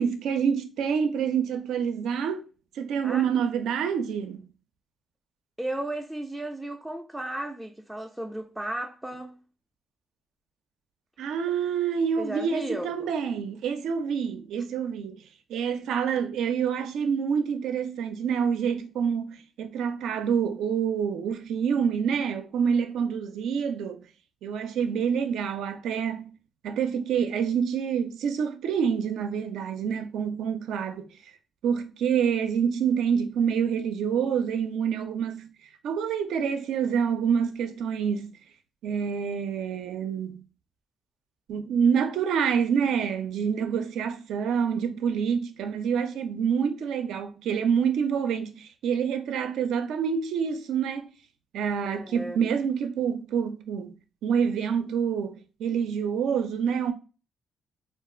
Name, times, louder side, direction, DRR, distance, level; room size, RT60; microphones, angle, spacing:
voice 1, 0.0-2.4 2.8-4.5 11.2-15.2 15.5-24.0 24.4-26.3 26.6-31.1 31.6-35.5 35.8-38.4 38.8-40.4 41.5-51.1 51.5-54.0 54.2-56.9, right 7 dB, 80° right, 0.4 m, -27 dB
voice 2, 5.6-9.4 12.2-13.1 51.9-52.4, right 1 dB, 5° right, 0.3 m, -34 dB
2.4 x 2.3 x 3.7 m
cardioid pair, 90°, 0 cm